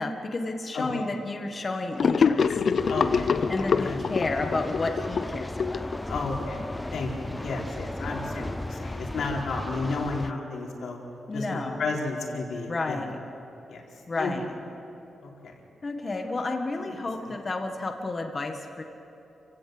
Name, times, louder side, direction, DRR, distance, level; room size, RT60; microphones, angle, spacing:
voice 1, 0.0-2.6 3.5-5.9 11.3-11.8 12.7-13.2 14.1-14.5 15.8-18.8, left 2 dB, 30° left, 3 dB, 1.6 m, -31 dB
voice 2, 0.7-1.1 2.9-4.0 6.1-6.6 6.9-11.0 11.3-13.0 13.7-13.8 14.2-14.3 15.2-15.3 16.7-16.9 17.3-17.4, left 3 dB, 75° left, -2 dB, 4.3 m, -32 dB
Gurgling / Sink (filling or washing), 2.0-6.5, left 6 dB, 50° left, 0.7 m, -25 dB
sound 1, 2.8-10.3, left 1 dB, 10° left, 0.4 m, -36 dB
29.5 x 16.5 x 7.9 m, 2.9 s
wide cardioid pair, 155°, 0 cm